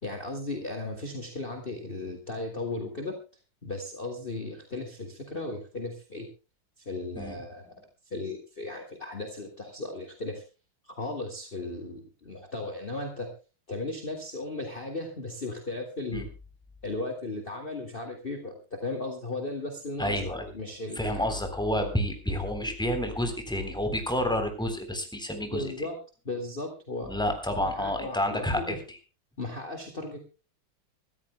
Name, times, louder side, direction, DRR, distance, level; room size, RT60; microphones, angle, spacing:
voice 1, 0.0-3.2 3.6-6.3 6.8-7.7 8.1-10.4 10.9-13.3 13.7-16.3 16.8-21.3 25.5-26.0 26.2-27.2 27.6-28.8 29.4-30.2, left 2 dB, 25° left, 3 dB, 2.3 m, -36 dB
voice 2, 20.0-20.5 20.9-25.7 27.0-28.8, left 1 dB, ahead, 5 dB, 3.4 m, -29 dB
25.0 x 14.0 x 2.2 m, 0.33 s
omnidirectional pair, 2.2 m